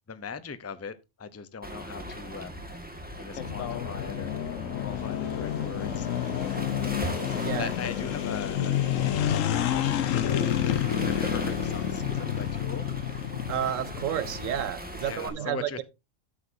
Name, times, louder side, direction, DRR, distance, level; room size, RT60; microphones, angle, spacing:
voice 1, 0.1-2.6 3.1-6.1 6.6-7.2 7.6-12.9 15.0-15.8, left 5 dB, 15° left, 0.5 m, -40 dB
Waves surf, 1.6-15.3, right 1 dB, 5° right, 1.7 m, -39 dB
sound 1, 3.4-14.7, left 10 dB, 90° left, 1.2 m, -29 dB
voice 2, 13.5-15.7, right 10 dB, 80° right, 1.1 m, -31 dB
13.0 x 8.2 x 2.7 m
omnidirectional pair, 1.3 m